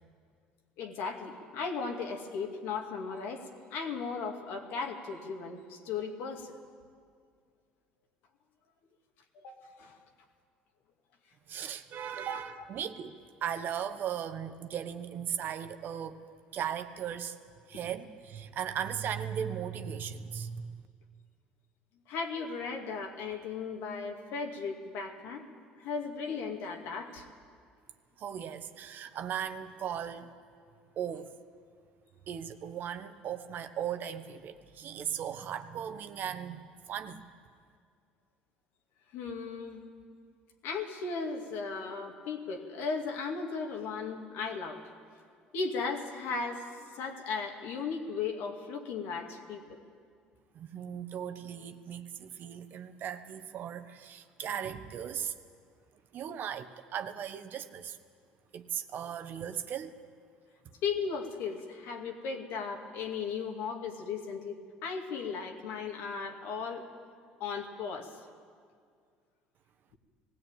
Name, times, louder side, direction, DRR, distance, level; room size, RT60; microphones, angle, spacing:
voice 1, 0.8-6.6 9.4-9.9 12.3-12.4 22.1-25.5 25.8-27.2 39.1-39.8 40.6-44.8 45.5-46.6 46.9-49.8 60.8-66.8 67.4-68.1, left 5 dB, 70° left, 3 dB, 2.3 m, -36 dB
voice 2, 11.5-16.2 16.5-17.4 17.7-20.9 28.2-30.3 31.0-31.3 32.3-37.2 50.5-55.3 56.1-58.0 58.5-59.9, right 9 dB, 55° right, 9 dB, 1.2 m, -37 dB
18.5 x 16.5 x 9.0 m, 2.1 s
hypercardioid pair, 75°, 4 cm